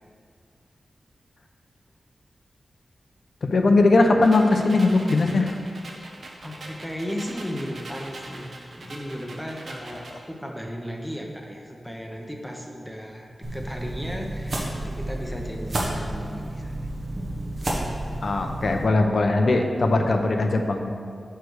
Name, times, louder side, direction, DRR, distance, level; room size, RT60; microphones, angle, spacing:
voice 1, 3.4-5.5 18.2-20.9, left 2 dB, 55° left, 4 dB, 0.7 m, -20 dB
sound 1, 4.2-10.2, right 2 dB, 60° right, 1.0 m, -42 dB
voice 2, 6.4-16.8, equal, 5° left, 1 dB, 0.9 m, -35 dB
sound 2, 13.4-18.8, right 1 dB, 45° right, 1.3 m, -31 dB
9.3 x 3.4 x 6.4 m, 2.3 s
wide cardioid pair, 125°, 0 cm